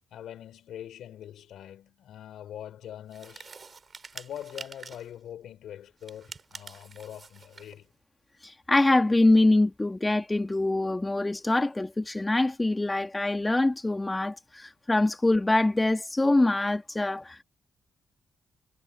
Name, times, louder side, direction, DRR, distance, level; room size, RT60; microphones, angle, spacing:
voice 1, 0.1-3.5 4.1-7.9, left 10 dB, 75° left, 3.8 m, -43 dB
sound 1, 3.1-5.1 6.0-7.8, right 5 dB, 45° right, 5.2 m, -46 dB
voice 2, 8.4-17.4, left 2 dB, 20° left, 2.8 m, -24 dB
hypercardioid pair, 45°, 0 cm